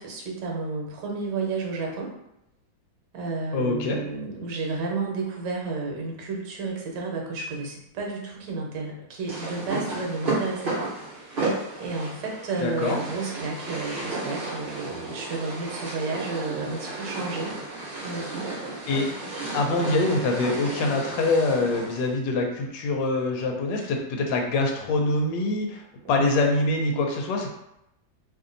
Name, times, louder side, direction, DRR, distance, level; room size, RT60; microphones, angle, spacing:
voice 1, 0.0-2.1 3.1-10.9 11.2-17.6 18.0-18.5 23.8-23.9 26.0-26.3, right 3 dB, 70° right, -1 dB, 1.4 m, -32 dB
voice 2, 3.5-4.0 12.6-13.0 18.9-19.1 19.5-27.5, left 2 dB, 75° left, 2 dB, 1.3 m, -24 dB
sound 1, 9.3-22.1, right 2 dB, 40° right, 0.8 m, -33 dB
3.0 x 2.6 x 3.8 m, 0.83 s
omnidirectional pair, 2.0 m